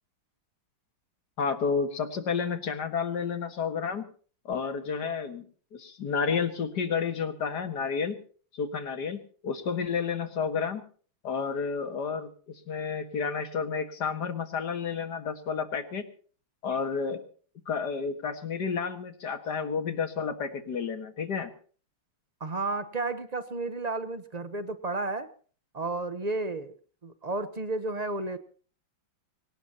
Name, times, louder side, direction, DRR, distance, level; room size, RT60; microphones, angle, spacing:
voice 1, 1.4-4.1 4.5-5.4 5.7-8.2 8.5-10.8 11.2-16.0 16.6-17.2 17.7-21.5, left 6 dB, 55° left, 8 dB, 2.1 m, -31 dB
voice 2, 22.4-25.3 25.7-26.8 27.0-28.4, right 3 dB, 40° right, 11 dB, 0.5 m, -32 dB
24.0 x 18.0 x 2.9 m, 0.43 s
omnidirectional pair, 2.3 m